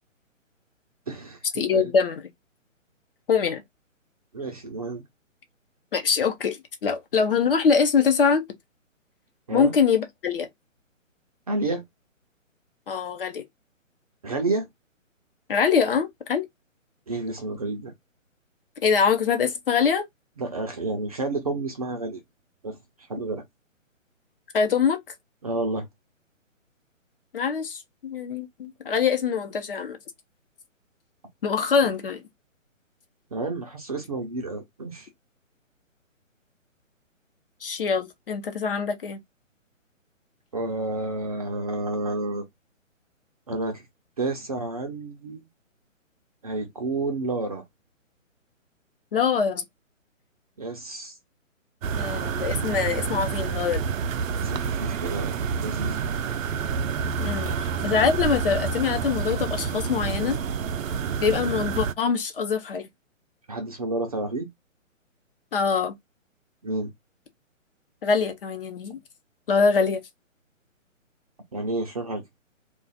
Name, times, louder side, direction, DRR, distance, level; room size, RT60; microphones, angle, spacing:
voice 1, 1.1-1.9 4.3-5.0 9.5-9.7 11.5-11.8 14.2-14.7 17.1-17.9 20.4-22.2 22.6-22.8 23.1-23.4 25.4-25.9 31.8-31.9 33.3-35.1 40.5-42.4 43.5-43.8 44.2-45.5 46.4-47.6 50.6-51.2 54.3-56.4 57.5-57.6 63.5-64.5 66.6-66.9 71.5-72.2, right 2 dB, 30° right, 0.5 m, -30 dB
voice 2, 1.6-2.2 3.3-3.6 5.9-8.4 9.5-10.5 12.9-13.4 15.5-16.5 18.8-20.0 24.5-25.0 27.3-30.0 31.4-32.2 37.6-39.2 49.1-49.6 51.9-53.8 57.2-57.5 57.8-60.4 61.2-62.9 65.5-65.9 68.0-69.0 69.5-70.0, left 6 dB, 45° left, 0.8 m, -23 dB
sound 1, 51.8-61.9, right 6 dB, 80° right, 0.5 m, -28 dB
2.4 x 2.3 x 3.9 m
hypercardioid pair, 145°, 40 cm